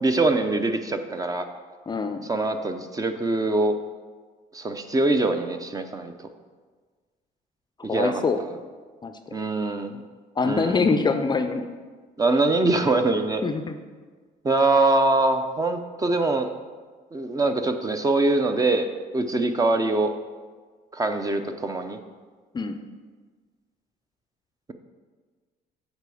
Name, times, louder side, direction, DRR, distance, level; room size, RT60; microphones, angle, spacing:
voice 1, 0.0-1.4 2.3-3.7 4.5-6.1 7.8-8.2 9.3-10.0 10.4-10.8 12.2-13.4 14.4-16.5 17.1-18.9 19.1-20.1 20.9-22.0, right 2 dB, 20° right, 7 dB, 0.6 m, -23 dB
voice 2, 1.9-2.3 7.9-8.4 9.0-9.1 10.4-11.7 13.4-13.8 22.5-22.8, left 4 dB, 25° left, 8 dB, 0.5 m, -24 dB
8.1 x 4.1 x 6.9 m, 1.5 s
cardioid pair, 110°, 17 cm